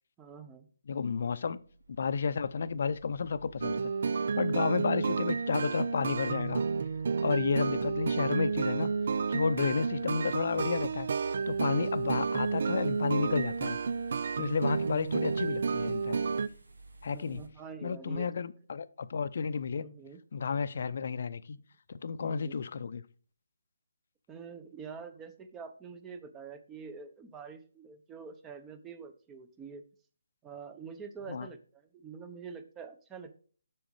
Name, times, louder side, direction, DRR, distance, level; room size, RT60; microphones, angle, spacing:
voice 1, 0.2-0.7 17.1-18.3 19.8-20.2 22.2-22.6 24.3-29.8 30.4-33.3, right 5 dB, 15° right, 0.8 m, -46 dB
voice 2, 0.9-1.6 2.0-3.9 4.4-6.6 7.2-8.9 9.3-11.1 11.5-13.8 14.4-16.2 17.0-17.4 17.8-19.8 20.3-21.6 21.9-23.0 31.3-31.5, left 5 dB, 55° left, 0.6 m, -31 dB
sound 1, 1.4-17.5, right 2 dB, 85° right, 1.4 m, -52 dB
sound 2, 3.6-16.5, right 5 dB, 55° right, 0.4 m, -31 dB
7.6 x 6.2 x 4.8 m
figure-of-eight pair, 155°, 0 cm